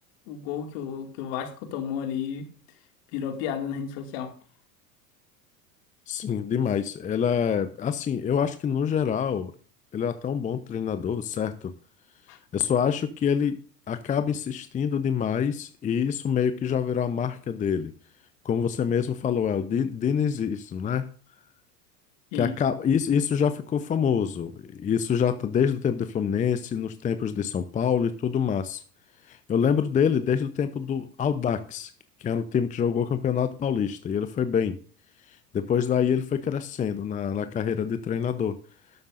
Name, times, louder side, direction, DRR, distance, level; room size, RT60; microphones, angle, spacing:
voice 1, 0.3-2.5 3.1-4.3 12.3-12.4 22.3-22.5, left 8 dB, 50° left, 2.4 m, -32 dB
voice 2, 6.1-9.5 9.9-11.7 12.5-13.6 13.9-17.9 18.4-21.1 22.3-28.8 29.3-31.9 32.2-34.8 35.5-38.6, left 7 dB, 15° left, 0.7 m, -26 dB
12.0 x 12.0 x 2.6 m
figure-of-eight pair, 90°, 48 cm